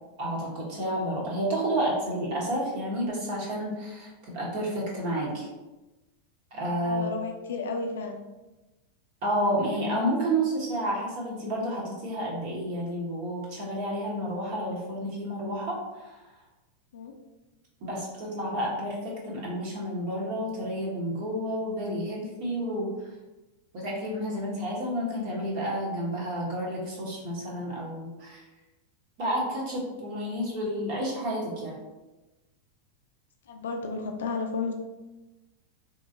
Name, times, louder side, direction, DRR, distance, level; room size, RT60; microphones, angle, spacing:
voice 1, 0.2-5.5 6.5-7.1 9.2-16.2 17.8-22.9 23.7-28.4 29.2-31.8, equal, 50° right, -4 dB, 1.1 m, -30 dB
voice 2, 6.8-8.2 16.9-17.1 33.5-34.7, left 4 dB, 60° left, 3 dB, 0.4 m, -32 dB
3.8 x 3.0 x 2.6 m, 1.1 s
figure-of-eight pair, 90°, 0 cm